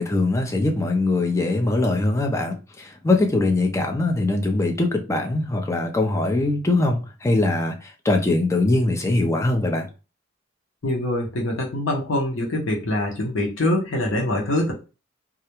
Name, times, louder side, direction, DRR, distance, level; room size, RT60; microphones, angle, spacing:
voice 1, 0.0-9.9, left 2 dB, 15° left, 0.4 m, -22 dB
voice 2, 10.8-14.7, left 1 dB, 80° left, 0.7 m, -24 dB
2.4 x 2.1 x 2.9 m
head